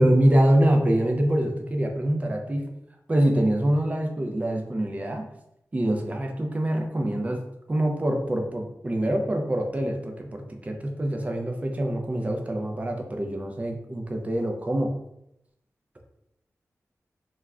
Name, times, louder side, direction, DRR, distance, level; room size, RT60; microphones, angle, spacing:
voice 1, 0.0-2.7 3.1-5.3 5.7-7.4 7.7-14.9, right 1 dB, 25° right, 3 dB, 0.4 m, -24 dB
2.2 x 2.1 x 3.5 m, 0.80 s
wide cardioid pair, 100°, 6 cm